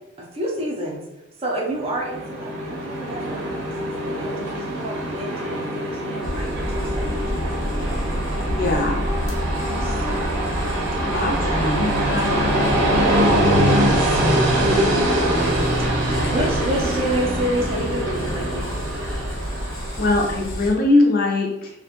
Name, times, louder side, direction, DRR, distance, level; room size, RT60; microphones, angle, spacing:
voice 1, 0.2-1.0 1.4-6.5 6.8-7.7 9.8-10.5 11.2-13.6 13.9-15.7 16.3-18.8, right 1 dB, 30° right, -1 dB, 0.4 m, -30 dB
Train, 1.8-20.4, right 1 dB, 65° right, 0.7 m, -23 dB
sound 1, 6.2-20.7, equal, 80° left, 0.8 m, -29 dB
voice 2, 8.5-9.0 11.0-13.2 20.0-21.7, left 2 dB, 45° left, 0 dB, 0.5 m, -22 dB
2.4 x 2.1 x 2.8 m, 0.88 s
head